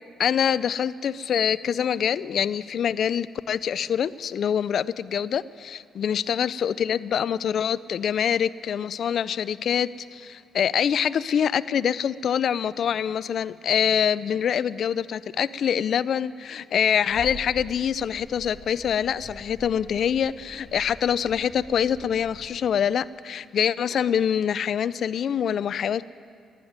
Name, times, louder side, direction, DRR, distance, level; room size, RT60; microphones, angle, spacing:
voice 1, 0.2-26.0, left 8 dB, 60° left, 17 dB, 0.4 m, -25 dB
sound 1, 17.1-22.4, right 1 dB, 10° right, 2.2 m, -45 dB
12.0 x 10.5 x 9.5 m, 2.3 s
cardioid pair, 90°, 0 cm